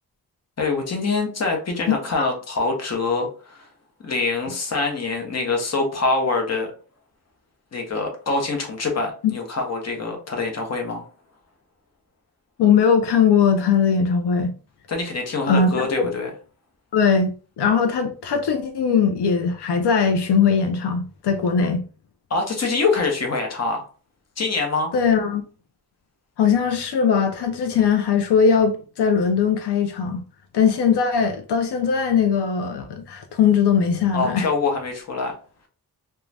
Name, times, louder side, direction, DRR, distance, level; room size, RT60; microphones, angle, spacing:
voice 1, 0.6-3.7 4.0-6.7 7.7-11.0 14.9-16.3 22.3-23.8 24.4-24.9 34.1-35.3, left 3 dB, 40° left, 0.8 m, -24 dB
voice 2, 1.9-2.3 9.2-9.3 12.6-14.5 15.5-16.1 16.9-21.8 24.9-25.4 26.4-30.2 30.5-34.5, left 6 dB, 85° left, 0.5 m, -20 dB
2.5 x 2.2 x 3.2 m
wide cardioid pair, 160°, 39 cm